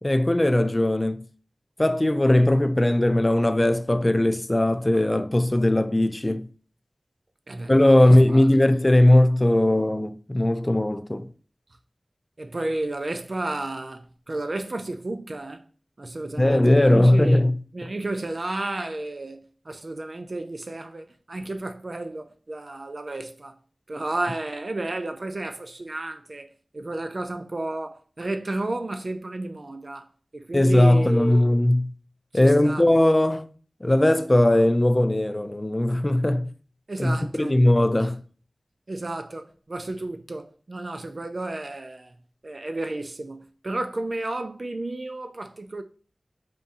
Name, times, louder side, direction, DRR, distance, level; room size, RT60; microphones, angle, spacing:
voice 1, 0.0-1.2 1.8-6.5 7.7-11.3 16.4-17.5 30.5-31.9 32.3-33.5 33.8-36.5 37.0-38.2, left 1 dB, 25° left, 0.3 m, -19 dB
voice 2, 8.0-8.5 12.4-15.6 16.0-17.4 17.7-23.6 23.9-26.5 26.7-30.1 30.3-31.5 32.3-32.8 36.9-37.5 38.0-38.1 38.9-42.1 42.4-45.8, right 2 dB, 55° right, 0.4 m, -32 dB
3.5 x 2.6 x 3.9 m
wide cardioid pair, 60°, 0 cm